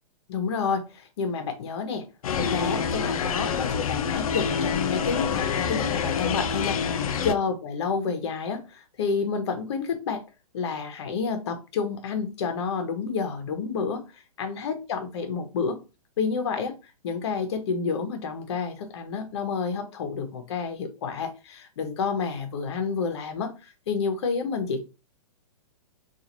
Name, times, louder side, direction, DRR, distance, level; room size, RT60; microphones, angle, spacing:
voice 1, 0.3-2.1 2.3-10.2 10.5-14.0 14.4-15.8 16.2-16.7 17.0-24.8, left 5 dB, 45° left, 7 dB, 0.9 m, -29 dB
sound 1, 2.2-7.3, left 6 dB, 70° left, 0.5 m, -27 dB
3.8 x 2.5 x 2.9 m, 0.29 s
hypercardioid pair, 170°, 19 cm